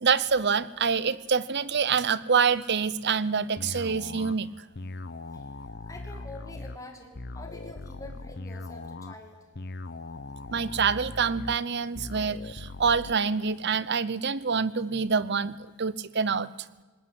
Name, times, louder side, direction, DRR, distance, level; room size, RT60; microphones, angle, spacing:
voice 1, 0.0-4.5 10.5-16.5, right 5 dB, 50° right, 17 dB, 0.7 m, -26 dB
sound 1, 3.6-13.2, left 2 dB, 45° left, 0.8 m, -40 dB
voice 2, 5.8-9.4, left 2 dB, 15° left, 2 dB, 2.5 m, -46 dB
20.5 x 19.5 x 9.7 m, 1.2 s
head